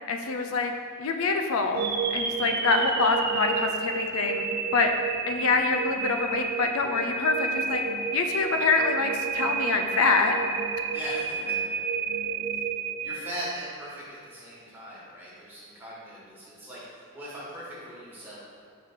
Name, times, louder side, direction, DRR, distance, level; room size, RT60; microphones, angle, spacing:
voice 1, 0.1-0.7 1.0-1.8 2.1-4.4 4.7-4.9 5.3-7.8 8.1-10.3, left 4 dB, 80° left, 5 dB, 0.5 m, -25 dB
sound 1, 1.7-13.8, right 5 dB, 45° right, 0.4 m, -30 dB
voice 2, 10.9-11.6 12.5-12.6 13.0-18.4, equal, 10° right, -8 dB, 1.5 m, -40 dB
4.7 x 3.7 x 5.6 m, 2.5 s
head